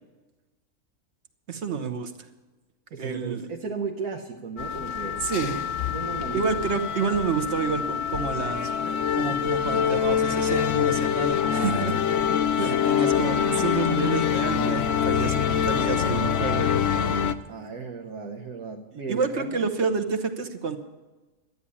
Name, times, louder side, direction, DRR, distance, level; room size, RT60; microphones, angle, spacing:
voice 1, 1.5-2.1 3.0-3.5 5.2-5.5 6.3-11.9 12.6-16.8 19.1-20.8, right 5 dB, 50° right, 8 dB, 1.3 m, -29 dB
voice 2, 2.9-6.5 12.6-13.0 17.5-19.6, right 5 dB, 85° right, 2 dB, 1.5 m, -35 dB
sound 1, 4.6-17.3, left 8 dB, 65° left, 0.9 m, -25 dB
12.5 x 9.7 x 8.5 m, 1.2 s
omnidirectional pair, 1.6 m